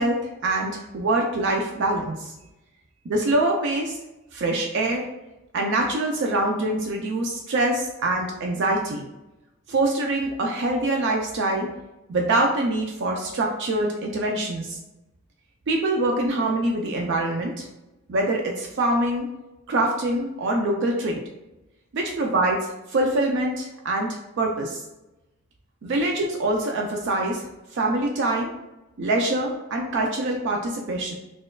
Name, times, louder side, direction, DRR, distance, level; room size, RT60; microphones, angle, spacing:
voice 1, 0.0-2.3 3.1-4.0 4.3-5.1 5.5-9.1 9.7-11.7 12.1-14.8 15.7-17.7 18.1-19.3 19.7-21.2 21.9-24.8 25.8-27.4 27.7-28.5 29.0-31.1, right 2 dB, 55° right, 1 dB, 0.4 m, -24 dB
4.3 x 2.3 x 2.2 m, 0.98 s
head